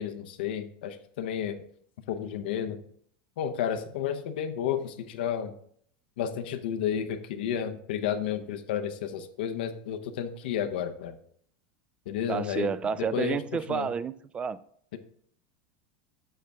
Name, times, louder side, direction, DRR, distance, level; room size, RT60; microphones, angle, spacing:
voice 1, 0.0-1.6 2.1-2.8 3.4-5.5 6.2-11.2 12.1-12.7 13.0-13.4 13.7-13.9, left 8 dB, 85° left, 0.8 m, -31 dB
voice 2, 12.3-14.6, right 6 dB, 20° right, 0.4 m, -30 dB
7.7 x 6.6 x 3.5 m
supercardioid pair, 130°, 5 cm